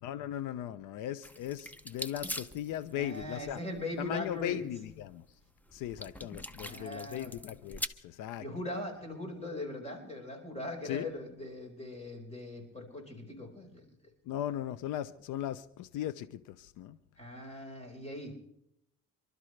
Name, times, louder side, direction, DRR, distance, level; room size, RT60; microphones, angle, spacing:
voice 1, 0.0-3.6 4.0-5.2 5.7-8.4 10.8-11.1 14.3-17.0, left 11 dB, 85° left, 0.8 m, -38 dB
sound 1, 1.2-7.9, equal, 5° left, 0.7 m, -43 dB
voice 2, 3.0-4.6 6.6-7.3 8.4-13.8 17.2-18.3, left 1 dB, 20° left, 4.9 m, -40 dB
28.0 x 12.5 x 3.3 m
cardioid pair, 115°, 30 cm